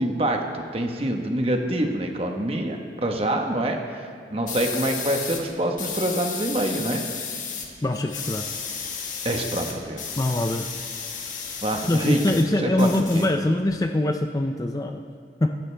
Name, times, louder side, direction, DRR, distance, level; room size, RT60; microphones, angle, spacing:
voice 1, 0.0-7.0 9.2-10.0 11.6-12.2 12.6-13.3, right 1 dB, 35° right, 3 dB, 1.3 m, -26 dB
sound 1, 4.5-5.4 5.8-7.7 7.9-12.4 12.7-13.7, left 6 dB, 45° left, 1.7 m, -33 dB
voice 2, 7.8-8.5 10.2-10.7 11.9-15.0 15.4-15.5, left 1 dB, 20° left, 5 dB, 0.5 m, -23 dB
24.0 x 11.5 x 3.4 m, 2.1 s
head